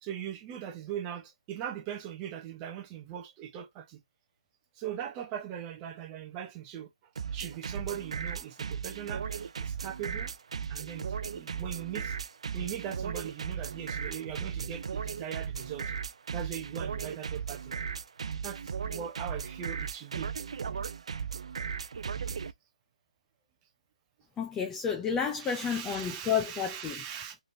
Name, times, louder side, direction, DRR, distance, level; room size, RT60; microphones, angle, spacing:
voice 1, 0.0-4.0 4.8-6.9 7.3-10.3 10.7-12.2 12.5-15.9 16.3-17.7 18.4-20.3 25.4-27.4, right 10 dB, 20° right, 0.8 m, -40 dB
sound 1, 7.2-22.5, right 6 dB, 55° right, 0.5 m, -36 dB
voice 2, 24.4-27.0, left 7 dB, 10° left, 0.4 m, -31 dB
3.7 x 3.3 x 2.6 m
figure-of-eight pair, 155°, 4 cm